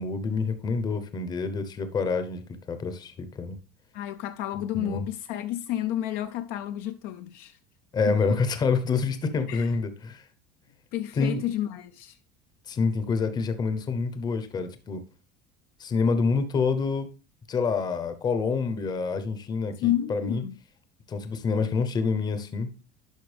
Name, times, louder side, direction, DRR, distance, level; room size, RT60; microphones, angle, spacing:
voice 1, 0.0-3.6 4.7-5.1 7.9-10.2 11.1-11.4 12.7-15.0 15.8-17.1 17.5-20.4 21.1-22.7, left 4 dB, 20° left, 0.8 m, -27 dB
voice 2, 3.9-7.6 8.1-8.2 9.5-9.7 10.9-12.2 19.8-20.5, left 13 dB, 55° left, 0.5 m, -30 dB
11.0 x 5.9 x 3.4 m
cardioid pair, 170°, 19 cm